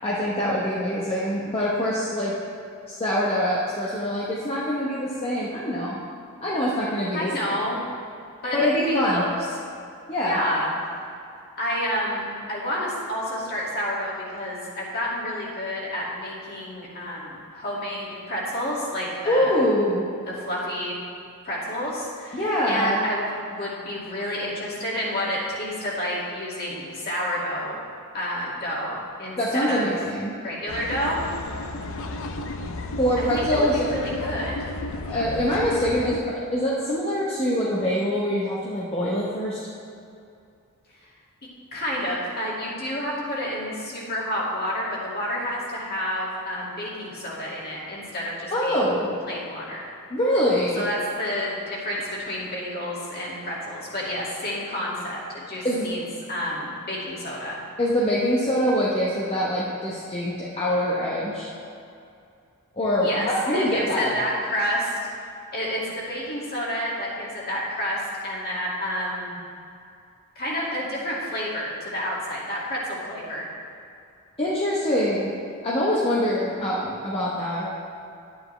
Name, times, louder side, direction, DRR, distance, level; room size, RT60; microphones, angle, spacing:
voice 1, 0.0-2.3 2.9-6.0 6.4-7.6 8.5-9.3 10.1-10.4 19.3-20.1 22.3-23.0 29.4-30.4 33.0-33.9 35.1-39.6 48.5-49.1 50.1-50.8 55.6-55.9 57.8-61.5 62.7-64.1 74.4-75.3 75.6-77.7, equal, 25° left, -7 dB, 1.0 m, -24 dB
voice 2, 7.1-7.8 8.4-9.3 10.2-10.7 11.6-19.5 20.3-21.0 21.4-27.8 28.1-29.9 30.4-31.5 33.2-34.7 41.7-48.9 49.3-49.9 50.7-56.0 56.3-57.6 63.0-63.3 63.5-64.9 65.5-69.4 70.4-73.5, equal, 45° left, -6 dB, 2.3 m, -29 dB
sound 1, 30.7-36.2, left 2 dB, 65° left, 0.6 m, -33 dB
11.0 x 9.6 x 3.3 m, 2.5 s
head